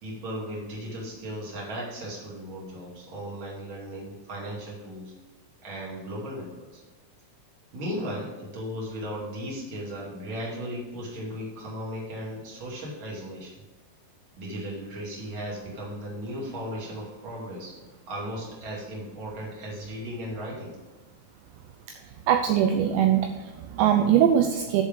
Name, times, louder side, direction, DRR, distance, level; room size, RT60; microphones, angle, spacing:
voice 1, 0.0-5.1 5.6-6.8 7.7-13.5 14.4-17.8 18.1-20.7, equal, 35° right, -4 dB, 2.5 m, -36 dB
voice 2, 22.0-24.8, right 9 dB, 85° right, 5 dB, 2.5 m, -22 dB
10.5 x 5.0 x 5.4 m, 1.2 s
omnidirectional pair, 5.7 m